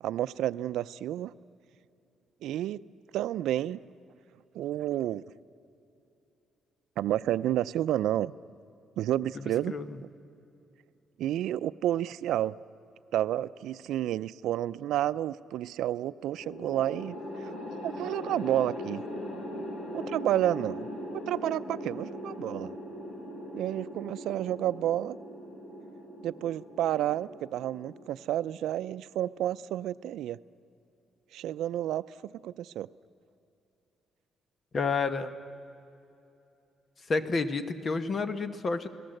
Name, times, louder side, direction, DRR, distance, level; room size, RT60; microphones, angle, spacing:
voice 1, 0.0-1.3 2.4-2.8 3.1-3.8 4.5-5.2 7.0-8.3 9.0-9.7 11.2-12.5 13.1-17.5 17.8-19.0 19.9-20.9 21.1-22.7 23.5-25.2 26.2-30.4 31.3-32.9, right 12 dB, 90° right, 15 dB, 0.5 m, -30 dB
voice 2, 9.7-10.0 34.7-35.3 37.1-38.9, left 4 dB, 30° left, 10 dB, 1.2 m, -29 dB
sound 1, 16.4-28.7, left 1 dB, 65° left, 3.7 m, -40 dB
29.5 x 18.5 x 7.9 m, 2.8 s
cardioid pair, 160°, 0 cm